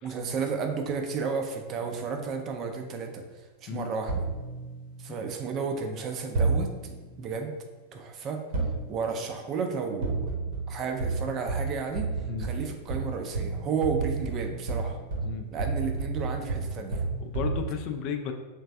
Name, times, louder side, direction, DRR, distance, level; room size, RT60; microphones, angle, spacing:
voice 1, 0.0-3.2 3.6-4.3 5.0-6.7 7.2-7.5 7.9-8.4 8.9-10.4 10.7-12.1 12.4-15.0 15.5-17.0, right 5 dB, 35° right, 4 dB, 0.5 m, -32 dB
sound 1, 1.8-2.4 4.1-5.4 6.3-7.2 8.5-9.4 10.0-17.7, right 3 dB, 55° right, 0.9 m, -32 dB
voice 2, 17.2-18.3, left 7 dB, 40° left, 5 dB, 0.4 m, -34 dB
3.4 x 3.2 x 3.2 m, 1.3 s
figure-of-eight pair, 90°, 0 cm